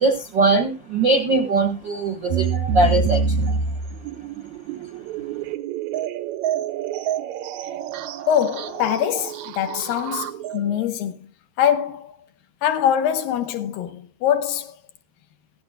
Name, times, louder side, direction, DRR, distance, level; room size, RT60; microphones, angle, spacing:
voice 1, 0.0-2.4 2.7-3.2, right 3 dB, 55° right, 1.2 m, -20 dB
sound 1, 2.3-10.9, right 6 dB, 80° right, 1.7 m, -27 dB
voice 2, 8.3-11.3 11.6-12.1 12.6-14.8, left 9 dB, 75° left, 2.6 m, -23 dB
16.5 x 15.0 x 2.3 m
omnidirectional pair, 4.3 m